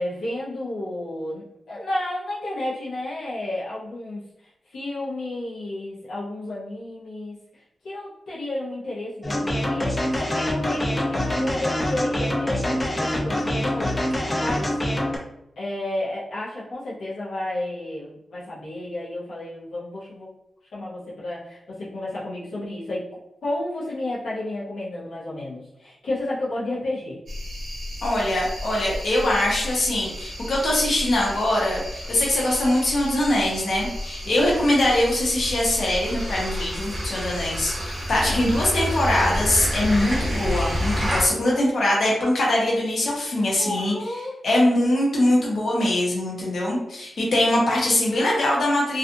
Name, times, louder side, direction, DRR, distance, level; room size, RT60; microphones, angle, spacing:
voice 1, 0.0-7.4 7.8-14.0 14.3-14.7 15.6-20.3 20.7-23.1 23.4-27.2 34.2-34.4 38.1-38.5 43.6-44.4, left 1 dB, 85° left, -8 dB, 0.7 m, -32 dB
sound 1, 9.2-15.2, left 1 dB, 20° left, 0.4 m, -25 dB
sound 2, 27.3-41.3, left 1 dB, 55° right, 0.7 m, -34 dB
voice 2, 28.0-43.9 44.4-49.0, left 1 dB, 60° left, -4 dB, 0.9 m, -22 dB
sound 3, 30.1-41.2, equal, 20° right, 0.6 m, -31 dB
2.5 x 2.4 x 2.5 m, 0.83 s
wide cardioid pair, 155°, 0 cm